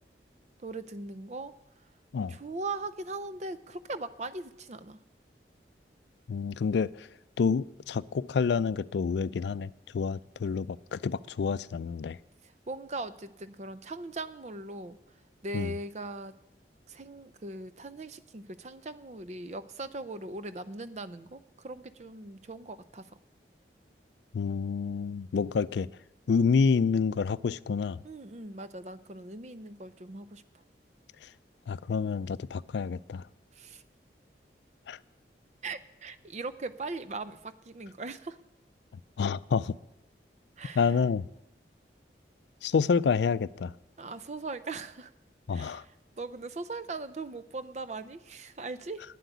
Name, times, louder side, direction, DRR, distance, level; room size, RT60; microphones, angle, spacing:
voice 1, 0.6-1.5 2.3-5.0 12.7-15.0 15.4-16.3 16.9-23.0 28.0-30.4 33.6-33.8 35.6-38.4 40.6-40.9 44.0-45.1 45.5-45.9 46.2-49.0, right 3 dB, 40° right, 14 dB, 0.5 m, -39 dB
voice 2, 6.3-7.1 7.4-12.2 15.5-15.7 24.3-25.9 26.3-28.0 31.7-33.2 34.9-35.0 39.2-39.7 40.8-41.2 42.6-43.7 45.5-45.8, left 5 dB, 75° left, 18 dB, 0.4 m, -28 dB
9.2 x 7.8 x 9.2 m, 0.88 s
head